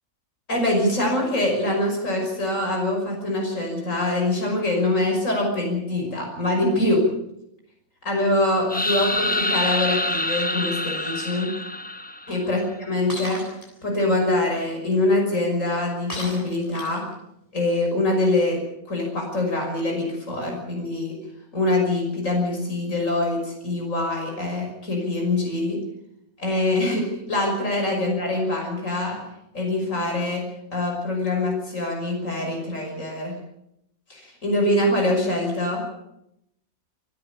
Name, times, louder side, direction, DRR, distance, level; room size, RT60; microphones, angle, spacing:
voice 1, 0.5-7.0 8.0-11.5 12.3-13.5 13.8-17.0 17.5-18.6 18.9-21.2 21.5-25.8 26.4-29.2 29.5-30.4 30.7-33.3 34.1-35.9, left 2 dB, 65° left, 1 dB, 6.3 m, -24 dB
sound 1, 8.7-12.5, left 1 dB, 10° left, 0.6 m, -26 dB
Shatter, 13.1-13.7 16.1-17.1, left 1 dB, 25° left, 8.2 m, -34 dB
28.0 x 13.0 x 8.4 m, 0.80 s
omnidirectional pair, 1.4 m